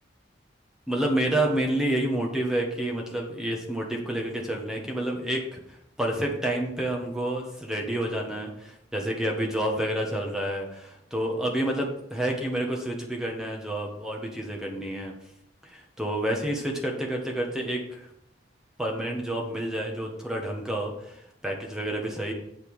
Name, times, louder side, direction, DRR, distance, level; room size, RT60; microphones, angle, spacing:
voice 1, 0.9-15.1 15.6-18.1 18.8-22.3, right 1 dB, 5° right, 0 dB, 1.2 m, -29 dB
8.2 x 5.4 x 5.3 m, 0.77 s
head